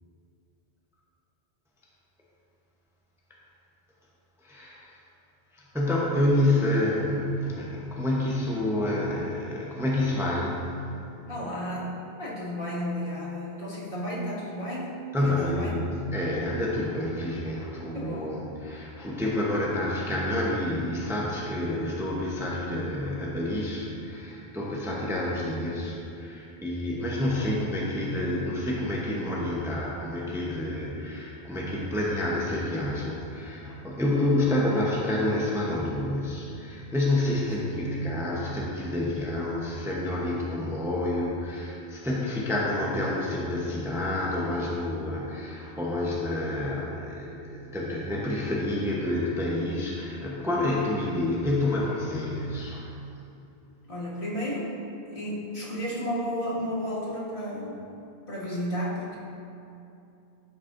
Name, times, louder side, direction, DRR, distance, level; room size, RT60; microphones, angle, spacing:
voice 1, 4.4-4.8 5.7-10.6 15.1-52.8, left 1 dB, 5° right, -4 dB, 0.8 m, -28 dB
voice 2, 11.2-15.8 17.9-18.4 27.3-27.7 48.9-49.0 53.8-54.7 55.1-57.9 58.3-59.2, equal, 55° left, -8 dB, 2.1 m, -33 dB
12.0 x 6.3 x 2.6 m, 2.7 s
omnidirectional pair, 1.1 m